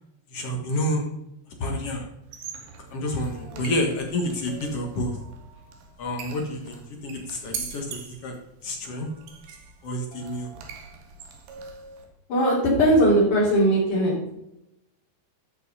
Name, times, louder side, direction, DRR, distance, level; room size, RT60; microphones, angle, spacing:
voice 1, 0.3-1.1 1.6-2.1 2.9-5.2 6.0-8.3 8.6-9.1 9.8-10.5, left 1 dB, 65° left, 1 dB, 1.5 m, -29 dB
sound 1, 2.2-12.1, right 6 dB, 85° right, 3.8 m, -42 dB
voice 2, 12.3-14.3, right 1 dB, 50° left, -8 dB, 4.3 m, -19 dB
13.5 x 5.7 x 5.4 m, 0.85 s
omnidirectional pair, 5.0 m